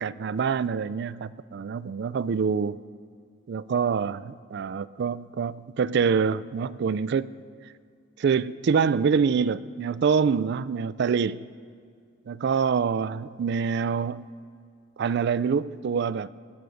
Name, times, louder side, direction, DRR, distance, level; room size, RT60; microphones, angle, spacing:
voice 1, 0.0-2.8 3.5-7.3 8.2-11.5 12.3-14.3 15.0-16.3, right 6 dB, 60° right, 17 dB, 0.3 m, -25 dB
19.5 x 6.6 x 6.3 m, 2.2 s
head